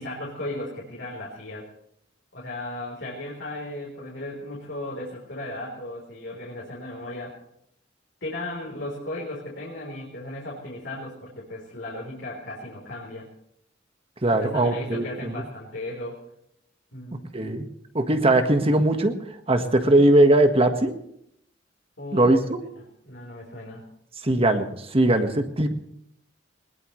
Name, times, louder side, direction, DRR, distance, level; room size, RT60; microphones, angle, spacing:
voice 1, 0.0-1.7 2.3-7.4 8.2-13.3 14.4-16.2 16.9-17.3 22.0-22.4 23.0-23.8, left 1 dB, 70° left, -4 dB, 3.9 m, -36 dB
voice 2, 14.2-15.3 17.3-17.6 18.0-19.2 19.5-20.9 22.1-22.6 24.2-25.7, right 1 dB, 30° right, 7 dB, 1.6 m, -20 dB
21.5 x 20.5 x 3.3 m, 0.74 s
head